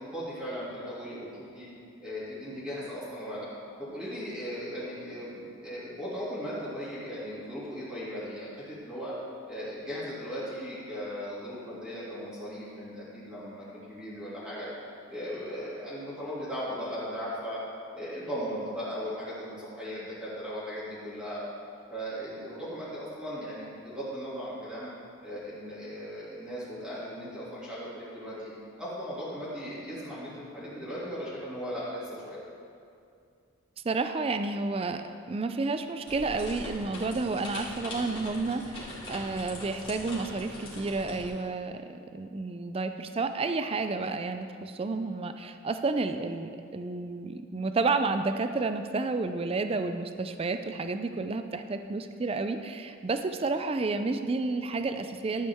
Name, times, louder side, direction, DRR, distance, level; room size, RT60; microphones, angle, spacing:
voice 1, 0.1-1.3 1.5-1.7 2.0-3.5 3.8-9.1 9.5-14.7 15.1-17.6 17.9-21.4 21.9-24.9 25.2-28.5 28.8-32.4, equal, 5° right, -11 dB, 2.5 m, -37 dB
voice 2, 33.8-55.5, right 3 dB, 30° right, 8 dB, 0.4 m, -31 dB
sound 1, 36.1-41.3, left 1 dB, 25° left, 2.2 m, -42 dB
12.0 x 8.5 x 3.5 m, 2.4 s
head